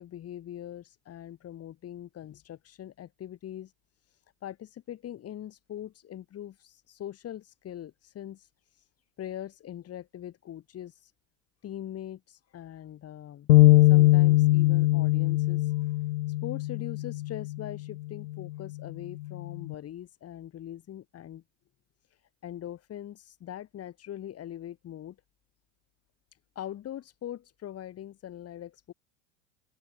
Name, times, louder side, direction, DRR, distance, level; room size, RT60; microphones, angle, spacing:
voice 1, 0.0-3.7 4.1-8.9 9.2-11.1 11.6-13.5 13.9-16.0 16.4-21.4 22.4-25.2 26.6-28.9, left 11 dB, 40° left, 7.3 m, -42 dB
sound 1, 13.5-17.8 18.2-18.5 19.3-19.7, left 17 dB, 80° left, 0.5 m, -22 dB
hypercardioid pair, 90°, 39 cm